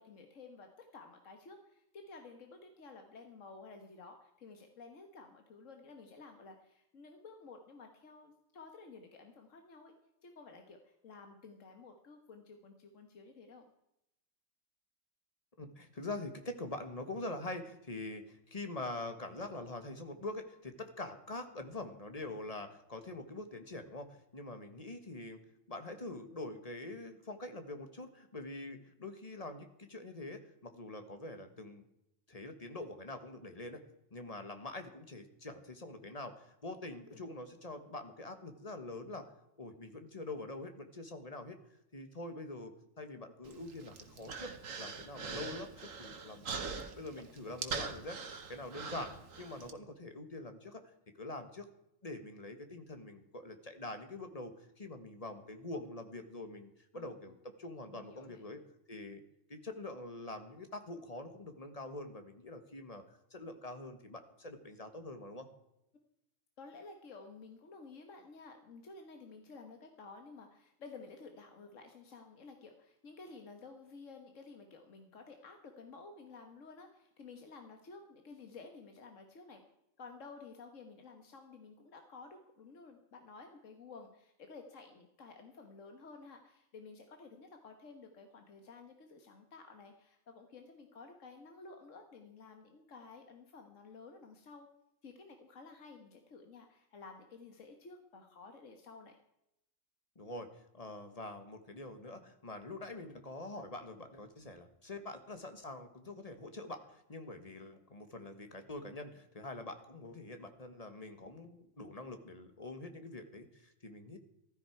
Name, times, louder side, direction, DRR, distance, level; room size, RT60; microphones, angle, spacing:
voice 1, 0.0-9.9 10.2-13.7 37.1-37.2 56.9-57.1 57.9-58.5 66.6-79.6 80.0-94.7 95.0-99.2, left 4 dB, 75° left, 5 dB, 1.7 m, -53 dB
voice 2, 15.6-25.4 25.7-31.8 32.3-33.8 34.1-39.3 39.6-41.6 41.9-48.2 48.5-51.7 52.0-58.6 58.9-59.2 59.5-65.5 100.1-114.2, left 2 dB, 30° left, 7 dB, 1.5 m, -45 dB
Human voice, 43.5-49.7, right 5 dB, 90° right, 1.7 m, -43 dB
15.0 x 13.5 x 4.6 m, 0.84 s
omnidirectional pair, 1.3 m